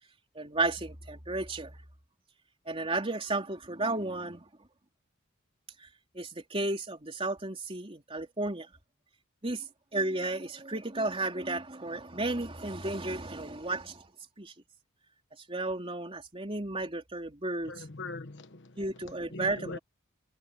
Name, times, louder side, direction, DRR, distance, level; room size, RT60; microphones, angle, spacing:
voice 1, 0.4-1.8 2.7-4.5 5.8-5.9 6.1-8.7 9.4-14.1 14.4-14.5 15.5-17.8 18.8-19.8, right 2 dB, 25° right, 3.7 m, -33 dB
voice 2, 17.7-18.8 19.3-19.8, left 2 dB, 55° left, 1.3 m, -41 dB
head